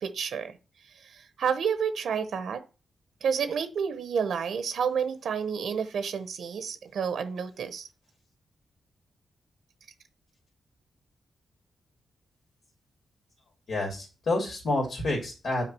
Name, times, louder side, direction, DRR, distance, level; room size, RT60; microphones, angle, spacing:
voice 1, 0.0-0.6 1.0-2.6 3.2-7.9, right 7 dB, 80° right, 11 dB, 0.9 m, -30 dB
voice 2, 13.7-15.6, left 2 dB, 65° left, 1 dB, 2.7 m, -29 dB
6.0 x 4.8 x 6.2 m, 0.32 s
cardioid pair, 80°, 0 cm